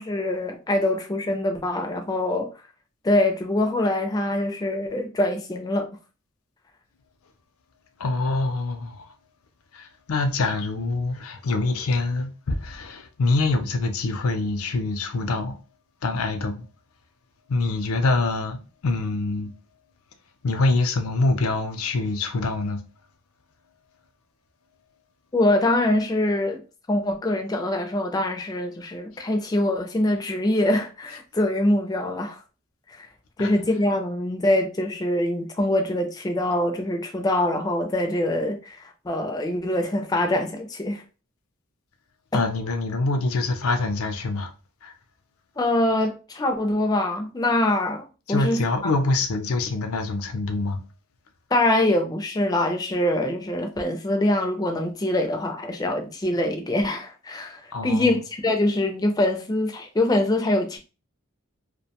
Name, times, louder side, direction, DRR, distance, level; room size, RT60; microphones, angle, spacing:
voice 1, 0.0-2.5 3.0-5.9 25.3-26.6 26.9-32.4 33.0-33.1 33.4-38.8 39.0-41.0 45.6-48.9 51.5-60.8, left 1 dB, 20° left, 0.4 m, -24 dB
voice 2, 8.0-9.1 9.7-15.6 16.0-16.6 17.5-19.5 20.4-22.8 33.4-33.5 42.3-44.5 44.8-44.9 48.3-50.8 57.7-58.2, left 3 dB, 80° left, 0.5 m, -25 dB
2.6 x 2.1 x 2.8 m
head